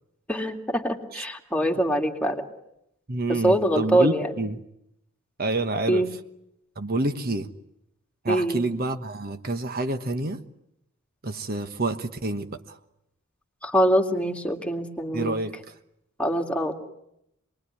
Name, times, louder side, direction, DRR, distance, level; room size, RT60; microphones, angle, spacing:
voice 1, 0.3-2.4 3.3-4.3 5.9-6.1 8.3-8.6 13.6-15.4 16.2-16.8, right 1 dB, 5° left, 2.3 m, -24 dB
voice 2, 3.1-4.6 5.4-6.1 6.8-7.5 8.2-10.4 11.2-12.8 15.1-15.7, right 2 dB, 45° right, 1.2 m, -28 dB
27.5 x 21.0 x 9.9 m
head